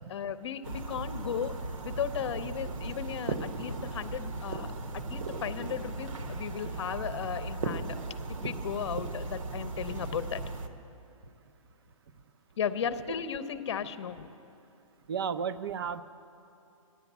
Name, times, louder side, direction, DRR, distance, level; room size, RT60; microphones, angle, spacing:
voice 1, 0.1-8.0 8.3-10.4 12.6-14.3, left 8 dB, 50° left, 12 dB, 0.7 m, -35 dB
sound 1, 0.6-10.7, right 3 dB, 70° right, 1.2 m, -37 dB
voice 2, 15.1-16.0, right 7 dB, 45° right, 13 dB, 0.6 m, -33 dB
15.0 x 10.5 x 8.1 m, 2.7 s
hypercardioid pair, 165°, 18 cm